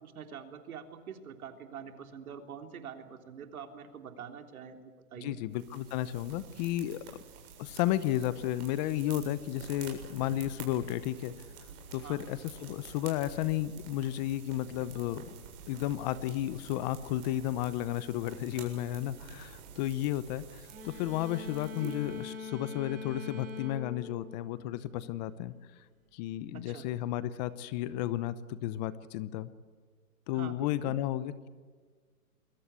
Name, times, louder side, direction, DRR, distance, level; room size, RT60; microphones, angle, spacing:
voice 1, 0.0-4.8 5.1-5.4 12.0-12.2 21.8-22.0 26.5-26.9 30.3-31.0, right 7 dB, 70° right, 6 dB, 3.6 m, -45 dB
voice 2, 5.2-7.0 7.6-11.3 11.9-15.2 15.7-25.5 26.1-29.5 30.3-31.5, left 13 dB, 30° left, 16 dB, 0.9 m, -33 dB
sound 1, 5.5-22.3, right 6 dB, 45° right, 7.5 m, -50 dB
sound 2, 20.7-25.1, left 4 dB, 20° right, 7.8 m, -44 dB
28.5 x 22.0 x 8.3 m, 1.5 s
hypercardioid pair, 145°, 44 cm